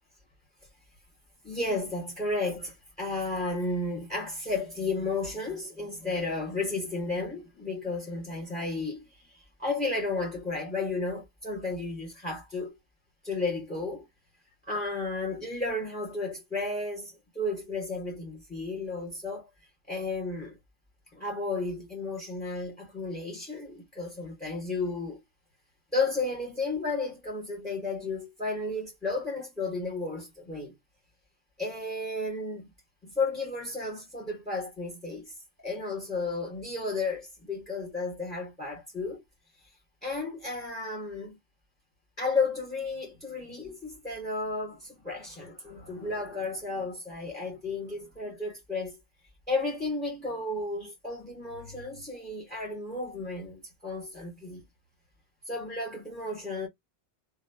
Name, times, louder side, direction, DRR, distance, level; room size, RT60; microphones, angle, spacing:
voice 1, 1.4-12.8 13.2-14.1 14.7-19.5 19.9-20.6 21.1-25.2 25.9-30.7 31.6-32.7 33.0-35.4 35.6-39.2 40.0-41.4 42.2-49.0 49.5-54.6 55.5-56.7, left 3 dB, 10° left, 1.6 m, -33 dB
3.0 x 2.1 x 2.8 m
omnidirectional pair, 1.1 m